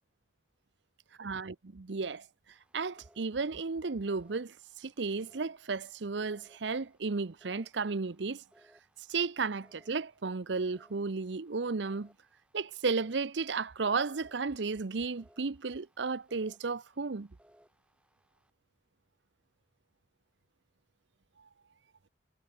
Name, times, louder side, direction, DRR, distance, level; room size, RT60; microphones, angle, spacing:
voice 1, 1.2-2.3 2.7-8.4 9.1-12.1 12.5-17.3, right 4 dB, 80° right, 0.7 m, -34 dB
sound 1, 2.5-18.5, equal, 5° right, 6.6 m, -67 dB
head